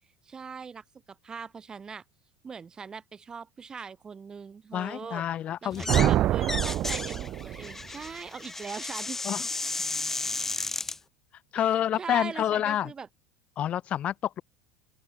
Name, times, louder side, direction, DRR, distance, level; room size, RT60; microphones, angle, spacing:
voice 1, 0.2-2.0 2.4-5.2 5.6-9.2 11.5-13.1, right 5 dB, 20° right, 3.6 m, -41 dB
voice 2, 4.7-6.1 9.2-9.4 9.7-9.8 11.5-12.9 13.6-14.4, left 11 dB, 35° left, 1.4 m, -28 dB
sound 1, 5.7-6.1 6.4-11.0, left 3 dB, 10° left, 0.6 m, -33 dB
sound 2, 5.9-7.8, right 13 dB, 45° right, 1.8 m, -26 dB
open air
supercardioid pair, 130°, 3 cm